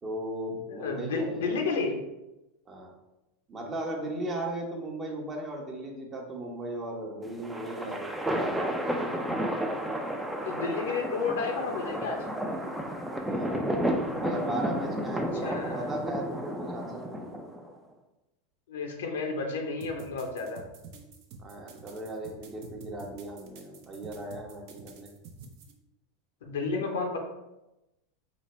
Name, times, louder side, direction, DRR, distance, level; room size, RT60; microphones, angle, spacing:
voice 1, 0.0-1.4 2.7-2.9 3.5-9.1 13.2-13.6 14.2-17.4 21.4-25.1, right 1 dB, 30° right, 0 dB, 0.9 m, -37 dB
voice 2, 0.7-2.0 10.4-12.2 15.3-15.9 18.7-20.6 26.4-27.2, left 4 dB, 80° left, 2 dB, 0.7 m, -31 dB
sound 1, 7.2-17.7, equal, 5° right, 0.4 m, -32 dB
sound 2, 19.8-25.7, right 5 dB, 60° right, 0.5 m, -48 dB
3.9 x 2.2 x 3.1 m, 0.96 s
hypercardioid pair, 100°, 0 cm